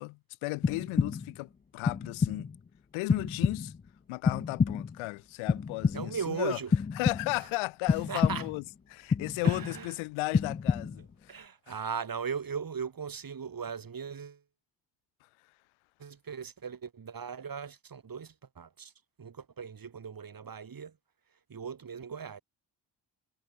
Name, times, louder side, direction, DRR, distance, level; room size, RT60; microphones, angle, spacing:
voice 1, 0.0-2.5 2.9-3.7 4.1-6.6 6.9-8.6 8.9-11.4 15.2-15.3, left 24 dB, 85° left, 0.8 m, -35 dB
sound 1, 0.6-1.4 1.9-2.6 3.1-3.9 4.2-5.1 5.5-6.3 6.7-7.5 7.9-8.7 9.1-9.9 10.3-11.1, left 5 dB, 20° left, 0.6 m, -29 dB
voice 2, 5.9-6.7 8.1-8.4 9.1-10.0 11.3-14.4 16.0-18.9 19.2-21.0 21.5-22.4, right 6 dB, 45° right, 3.6 m, -38 dB
supercardioid pair, 50°, 47 cm